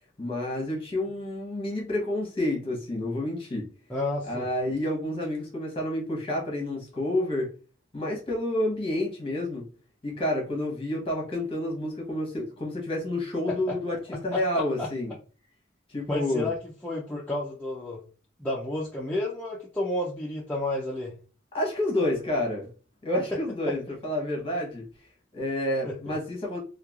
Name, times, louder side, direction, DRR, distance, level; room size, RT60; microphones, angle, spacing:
voice 1, 0.2-3.7 4.2-7.5 7.9-9.7 10.0-15.1 15.9-16.5 21.5-22.7 23.0-24.9 25.3-26.6, left 1 dB, 25° left, -1 dB, 0.9 m, -29 dB
voice 2, 3.9-4.5 13.5-13.8 14.1-14.4 14.8-14.9 16.1-16.6 16.8-18.0 18.4-21.1 23.7-23.8 25.8-25.9, left 1 dB, 5° left, -5 dB, 0.4 m, -31 dB
3.0 x 2.3 x 2.3 m, 0.36 s
head